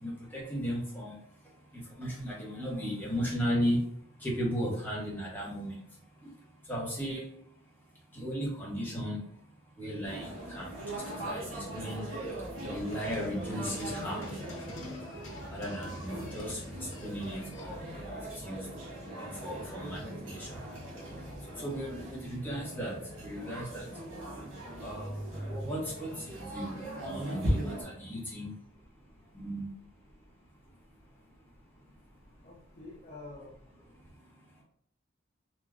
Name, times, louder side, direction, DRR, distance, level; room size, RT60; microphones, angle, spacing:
voice 1, 0.0-1.1 1.7-3.8 4.2-5.8 6.7-7.2 8.1-9.2 9.8-10.7 11.2-12.1 12.6-14.2 15.5-16.6 17.0-17.8 18.4-18.7 19.1-20.5 21.5-23.9 24.8-25.1 25.5-28.5 29.3-29.7, equal, 10° left, -6 dB, 0.8 m, -35 dB
sound 1, 10.0-27.8, right 1 dB, 70° right, 1.3 m, -39 dB
sound 2, 12.6-17.8, left 1 dB, 75° left, 0.6 m, -48 dB
voice 2, 32.1-33.7, left 2 dB, 30° left, -5 dB, 0.4 m, -49 dB
3.3 x 2.1 x 2.4 m, 0.66 s
head